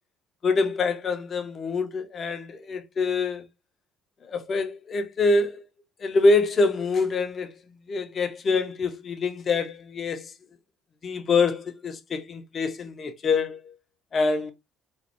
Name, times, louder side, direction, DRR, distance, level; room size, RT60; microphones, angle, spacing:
voice 1, 0.4-3.5 4.2-5.6 6.0-7.5 7.9-10.3 11.0-13.7 14.1-14.5, left 3 dB, 45° left, 0.8 m, -25 dB
3.9 x 3.1 x 2.9 m
supercardioid pair, 75°, 0 cm